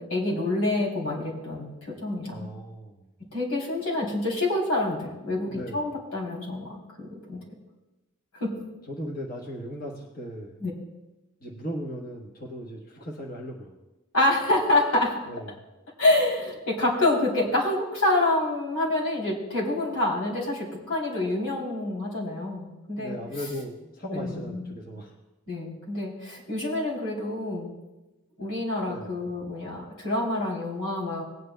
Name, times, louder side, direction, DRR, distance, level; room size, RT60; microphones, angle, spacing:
voice 1, 0.0-2.5 3.3-7.4 8.4-8.5 10.6-10.7 14.1-15.2 16.0-23.2 24.1-24.8 25.5-27.7 28.4-31.2, left 2 dB, 85° left, -2 dB, 3.3 m, -27 dB
voice 2, 2.3-3.0 5.5-5.8 8.9-10.6 11.4-13.8 15.3-15.6 23.0-25.1 28.9-29.1, equal, 40° left, -1 dB, 1.2 m, -37 dB
19.0 x 9.5 x 2.2 m, 1.0 s
head